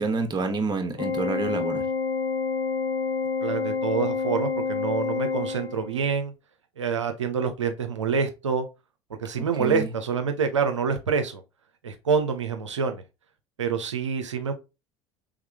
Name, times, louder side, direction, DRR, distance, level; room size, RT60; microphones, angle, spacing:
voice 1, 0.0-1.9 9.6-9.9, right 4 dB, 30° right, 1.1 m, -28 dB
Organ, 1.0-6.0, left 4 dB, 55° left, 2.0 m, -28 dB
voice 2, 3.4-6.3 6.8-8.7 9.2-11.4 11.8-13.0 13.6-14.5, right 5 dB, 85° right, 0.5 m, -26 dB
3.5 x 3.4 x 3.2 m
figure-of-eight pair, 65°, 15 cm